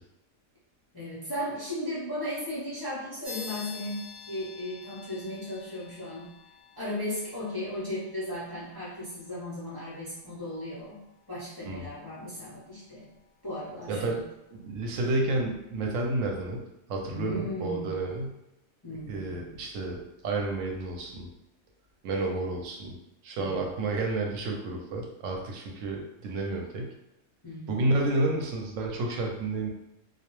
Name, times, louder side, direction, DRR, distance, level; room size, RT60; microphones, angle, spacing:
voice 1, 0.9-4.0 4.3-6.3 6.8-11.0 11.3-13.1 13.4-14.2 17.1-18.1 18.8-19.5 23.4-23.6 27.4-27.9, left 1 dB, 35° left, -9 dB, 0.3 m, -36 dB
sound 1, 3.2-13.2, left 5 dB, 30° right, 0.7 m, -49 dB
voice 2, 13.9-14.2 14.5-16.6 16.9-18.3 19.1-21.3 22.0-23.0 23.2-26.9 27.7-29.7, right 2 dB, 70° right, 1 dB, 0.9 m, -30 dB
2.3 x 2.0 x 3.0 m, 0.87 s
omnidirectional pair, 1.5 m